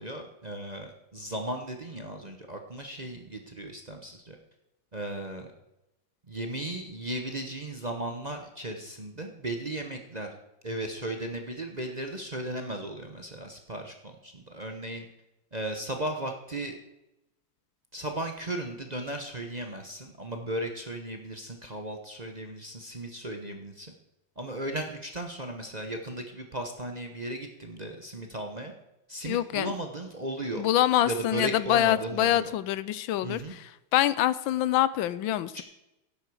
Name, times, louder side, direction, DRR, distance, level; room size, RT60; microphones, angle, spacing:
voice 1, 0.0-4.4 4.9-5.5 6.3-10.3 10.6-15.1 15.5-16.7 17.9-23.9 24.4-28.7 29.1-30.6 31.0-32.5 33.2-33.5 35.5-35.6, right 1 dB, 30° right, 4 dB, 0.9 m, -36 dB
voice 2, 29.2-29.7 30.6-35.6, left 12 dB, 85° left, 16 dB, 1.4 m, -25 dB
12.0 x 10.0 x 4.9 m, 0.92 s
omnidirectional pair, 2.1 m